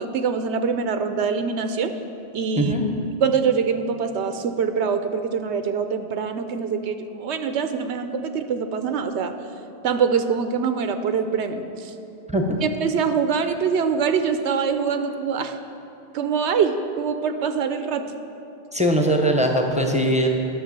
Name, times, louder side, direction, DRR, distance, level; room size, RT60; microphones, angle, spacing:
voice 1, 0.0-2.0 2.3-2.7 3.2-9.3 9.8-11.9 12.6-15.5 16.1-18.0, right 6 dB, 85° right, 9 dB, 0.9 m, -24 dB
voice 2, 18.7-20.3, equal, 5° right, 1 dB, 0.8 m, -20 dB
11.5 x 6.3 x 7.4 m, 2.9 s
omnidirectional pair, 1.1 m